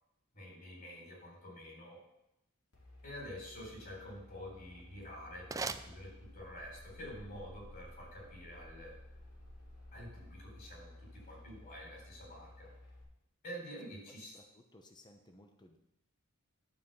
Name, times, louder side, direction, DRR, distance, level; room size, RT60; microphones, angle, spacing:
voice 1, 0.3-2.0 3.0-8.9 9.9-12.7 13.4-14.3, equal, 40° left, -3 dB, 4.1 m, -48 dB
sound 1, 2.7-13.0, left 1 dB, 90° left, 2.7 m, -54 dB
sound 2, 4.7-6.7, right 4 dB, 15° right, 0.3 m, -44 dB
voice 2, 13.9-15.8, left 1 dB, 20° left, 4 dB, 0.9 m, -60 dB
11.5 x 4.8 x 7.0 m, 0.85 s
head